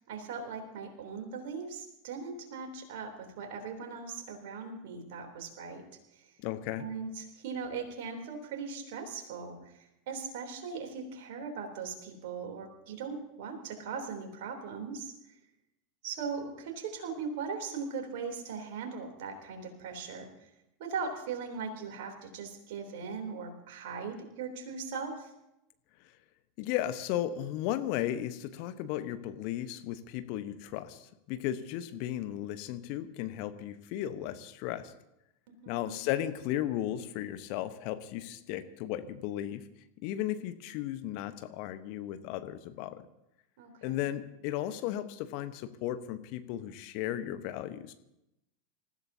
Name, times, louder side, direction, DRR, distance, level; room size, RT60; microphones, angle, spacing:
voice 1, 0.0-5.8 6.1-6.3 6.8-15.4 16.0-20.5 20.8-25.3 35.5-36.1 43.6-44.0, right 5 dB, 55° right, 3 dB, 3.4 m, -39 dB
voice 2, 6.4-6.9 26.6-34.9 35.7-39.6 40.0-43.0 43.8-47.9, left 12 dB, 50° left, 10 dB, 1.1 m, -35 dB
27.0 x 15.0 x 2.8 m, 0.87 s
figure-of-eight pair, 85°, 0 cm